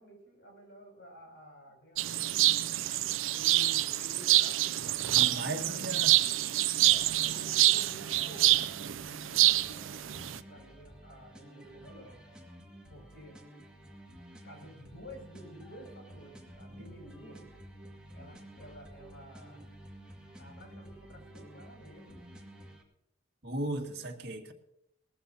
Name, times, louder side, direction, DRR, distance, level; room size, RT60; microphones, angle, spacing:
voice 1, 0.0-2.4 3.3-4.8 5.3-6.3 6.8-8.6 9.2-12.2 12.9-13.4 14.4-17.4 18.1-19.6 20.4-22.3, equal, 55° left, 1 dB, 6.8 m, -51 dB
sound 1, 2.0-10.4, right 15 dB, 75° right, 0.5 m, -27 dB
voice 2, 5.1-6.2 16.8-16.9 23.4-24.5, right 1 dB, 55° right, 1 dB, 2.0 m, -36 dB
sound 2, 6.8-22.8, right 1 dB, 5° right, 2.1 m, -51 dB
20.0 x 15.0 x 2.9 m, 0.82 s
head